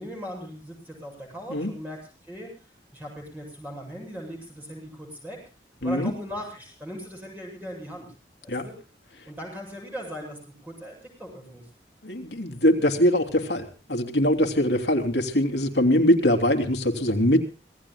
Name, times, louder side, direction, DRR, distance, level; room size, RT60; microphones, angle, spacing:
voice 1, 0.0-2.5 2.9-5.4 5.8-8.1 8.4-8.7 9.3-11.7 15.7-15.9, equal, 10° right, -1 dB, 7.9 m, -39 dB
voice 2, 12.0-17.5, equal, 80° left, 5 dB, 3.0 m, -22 dB
26.5 x 18.5 x 2.3 m, 0.35 s
head